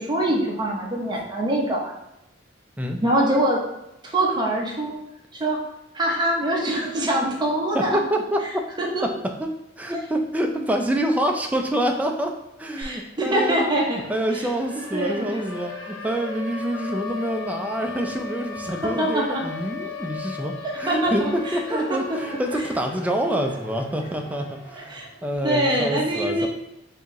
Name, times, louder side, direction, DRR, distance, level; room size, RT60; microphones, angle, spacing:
voice 1, 0.0-1.9 3.0-3.6 4.0-5.0 5.4-5.6 5.9-8.0 8.8-9.0 12.8-14.0 14.3-14.5 14.9-15.4 19.0-19.4 20.9-22.0 24.9-25.1 25.4-26.5, right 1 dB, 25° right, -2 dB, 0.8 m, -24 dB
voice 2, 7.7-8.4 9.4-12.3 12.6-13.7 14.1-26.5, right 1 dB, 10° right, 3 dB, 0.4 m, -26 dB
Siren, 12.8-12.9 13.2-25.3, left 3 dB, 65° left, 1.0 m, -37 dB
4.5 x 2.7 x 3.0 m, 0.87 s
head